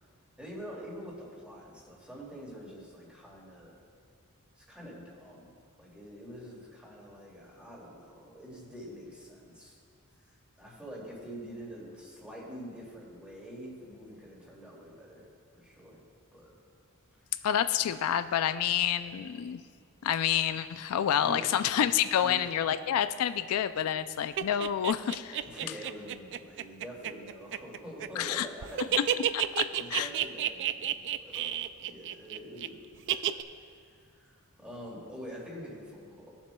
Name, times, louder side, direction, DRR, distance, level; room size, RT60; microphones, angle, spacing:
voice 1, 0.4-3.8 4.6-9.8 10.6-15.3 15.5-16.0 16.3-16.5 21.2-21.5 22.2-22.5 25.4-29.0 29.7-31.6 31.9-33.4 34.1-36.4, equal, 5° right, -4 dB, 2.4 m, -45 dB
voice 2, 17.4-19.6 20.0-25.4 28.2-28.5 29.3-30.1, left 9 dB, 90° left, 12 dB, 0.3 m, -28 dB
sound 1, 24.4-28.4 28.6-32.7 33.1-33.4, right 10 dB, 55° right, 0.3 m, -30 dB
20.5 x 7.2 x 2.2 m, 2.2 s
head